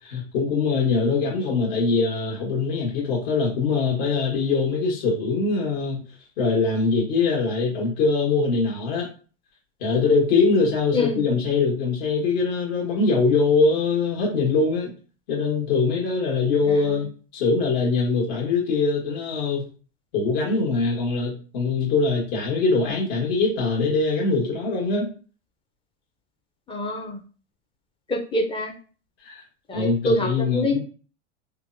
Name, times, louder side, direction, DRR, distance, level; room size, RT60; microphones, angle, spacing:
voice 1, 0.0-6.0 6.4-9.1 9.8-14.9 15.3-17.1 17.3-19.7 20.1-25.1 29.2-29.4 29.7-30.8, left 4 dB, 65° left, -3 dB, 1.3 m, -22 dB
voice 2, 26.7-27.2 28.1-28.7 29.7-30.8, left 2 dB, 15° left, 2 dB, 0.4 m, -25 dB
3.3 x 2.1 x 2.5 m, 0.38 s
supercardioid pair, 120°, 33 cm